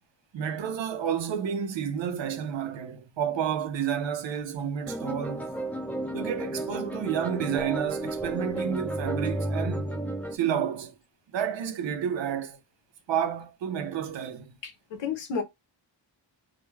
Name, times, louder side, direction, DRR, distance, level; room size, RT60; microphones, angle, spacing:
voice 1, 0.3-5.6 6.1-9.9 10.3-10.9 11.3-12.6 13.1-14.5, right 8 dB, 75° right, 0.6 m, -30 dB
sound 1, 4.9-10.4, right 1 dB, 5° left, 0.3 m, -32 dB
voice 2, 14.6-15.4, left 6 dB, 70° left, 0.7 m, -32 dB
2.2 x 2.2 x 3.1 m
wide cardioid pair, 160°, 45 cm